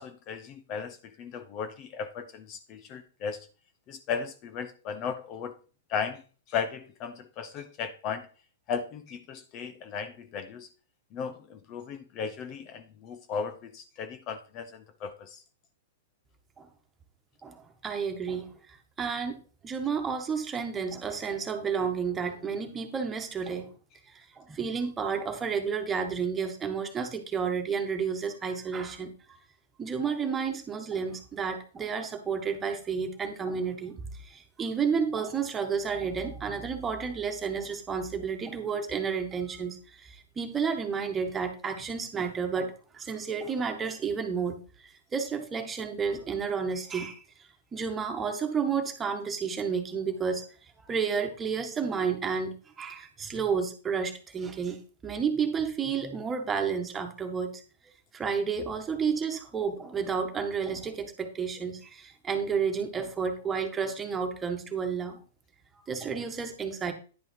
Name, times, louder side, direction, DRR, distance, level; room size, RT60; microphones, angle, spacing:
voice 1, 0.0-3.4 3.9-5.5 5.9-6.2 6.5-8.3 8.7-10.7 11.1-15.4, left 6 dB, 40° left, 0.9 m, -36 dB
voice 2, 17.4-18.5 19.0-19.4 19.6-23.7 24.1-29.4 29.8-47.2 47.7-50.4 50.8-54.8 55.0-57.6 58.1-65.2 65.9-66.9, right 6 dB, 15° right, 1.7 m, -31 dB
10.0 x 5.4 x 4.7 m
hypercardioid pair, 120°, 0 cm